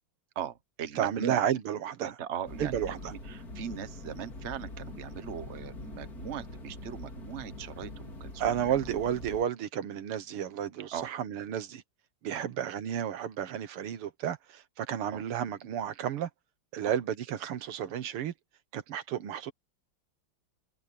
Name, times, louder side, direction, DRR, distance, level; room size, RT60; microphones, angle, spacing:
voice 1, 0.3-1.5 2.0-3.0 3.3-8.8 10.9-11.1 12.3-12.5 15.1-15.2 16.8-16.9, right 9 dB, 40° right, 1.3 m, -39 dB
voice 2, 1.0-2.2 2.6-3.1 8.4-11.8 12.2-16.3 16.7-18.3 18.7-19.5, right 9 dB, 90° right, 2.1 m, -32 dB
sound 1, 2.4-9.4, left 2 dB, 40° left, 3.9 m, -43 dB
omnidirectional pair, 2.4 m